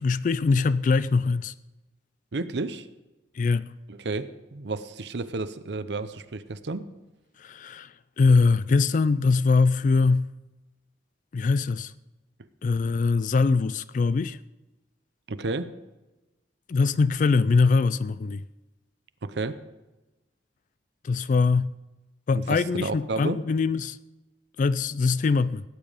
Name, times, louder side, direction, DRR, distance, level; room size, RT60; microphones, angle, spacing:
voice 1, 0.0-1.5 3.3-3.7 7.4-10.3 11.3-11.9 12.6-14.4 16.7-18.4 21.0-21.7 22.3-24.0 24.6-25.6, left 4 dB, 45° left, 0.3 m, -22 dB
voice 2, 2.3-2.9 3.9-6.9 15.3-15.7 19.2-19.6 22.3-23.4, right 3 dB, 75° right, 0.7 m, -31 dB
17.5 x 9.2 x 5.0 m
head